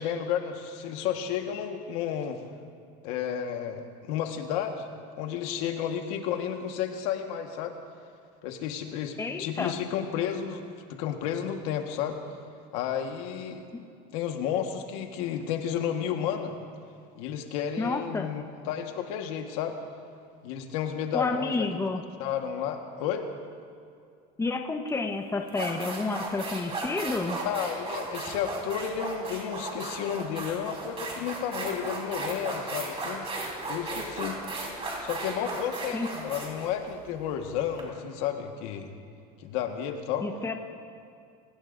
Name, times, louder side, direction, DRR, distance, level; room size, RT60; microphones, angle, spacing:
voice 1, 0.0-2.4 3.0-4.9 5.2-7.8 8.4-10.6 10.9-12.2 12.7-13.7 14.1-16.5 17.1-19.8 20.4-21.6 22.2-23.2 27.4-33.2 33.7-34.4 35.0-38.9 39.4-40.3, left 9 dB, 85° left, 4 dB, 1.5 m, -32 dB
voice 2, 9.2-9.7 13.7-13.8 17.8-18.3 21.1-22.0 24.4-27.4 35.9-36.1 40.2-40.5, left 3 dB, 15° left, 4 dB, 1.1 m, -30 dB
sound 1, 24.9-25.0 25.5-37.8, right 3 dB, 30° right, 4.0 m, -35 dB
24.5 x 18.5 x 2.7 m, 2.3 s
supercardioid pair, 105°, 19 cm